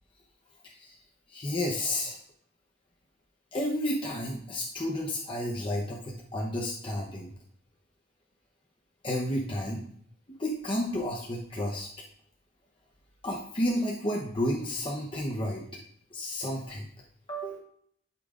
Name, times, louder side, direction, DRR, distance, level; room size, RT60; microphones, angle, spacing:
voice 1, 1.3-2.2 3.5-7.3 9.0-9.9 10.4-11.9 13.2-15.6 16.1-16.8 17.3-17.6, left 1 dB, 25° left, -3 dB, 0.9 m, -31 dB
12.0 x 5.9 x 2.5 m, 0.65 s
head